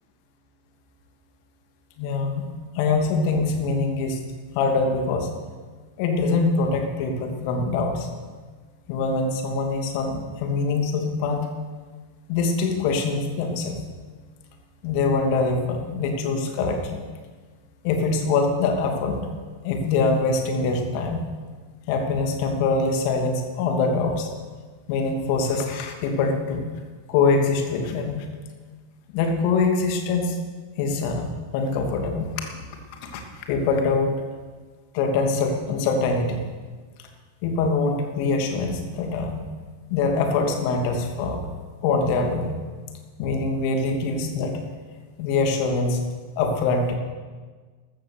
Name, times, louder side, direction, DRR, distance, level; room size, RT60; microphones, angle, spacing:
voice 1, 2.0-4.2 4.5-5.3 6.0-8.1 8.9-11.5 12.3-13.8 14.8-17.0 17.8-19.2 19.6-21.2 21.9-24.3 24.9-26.7 27.1-28.3 29.1-30.4 30.8-32.3 33.0-34.2 34.9-36.4 37.4-39.4 39.9-41.5 41.8-42.5 43.2-44.6 45.2-46.1 46.4-47.0, left 4 dB, 45° left, 3 dB, 2.7 m, -24 dB
14.5 x 13.5 x 6.6 m, 1.4 s
figure-of-eight pair, 90°, 0 cm